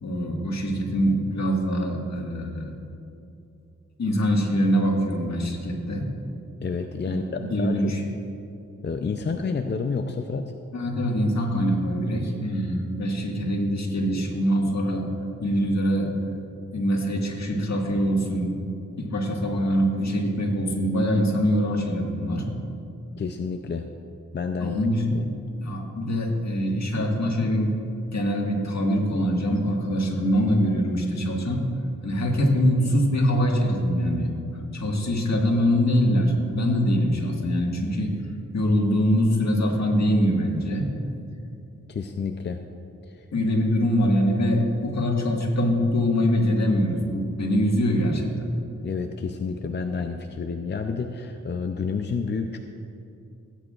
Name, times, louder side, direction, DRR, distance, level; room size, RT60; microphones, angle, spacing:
voice 1, 0.0-2.7 4.0-6.1 7.1-7.2 7.5-8.0 10.7-15.0 15.4-16.1 16.7-18.6 19.0-22.5 24.6-25.3 25.6-27.7 28.1-31.7 32.0-34.3 34.7-38.1 38.5-40.9 43.3-48.5, equal, 60° left, 0 dB, 1.8 m, -23 dB
voice 2, 6.6-7.9 8.8-10.5 23.2-23.9 24.3-24.8 25.1-25.3 41.9-42.6 43.0-43.3 48.8-52.6, left 5 dB, 35° left, 5 dB, 0.5 m, -29 dB
16.5 x 8.9 x 2.5 m, 2.7 s
cardioid pair, 60°, 30 cm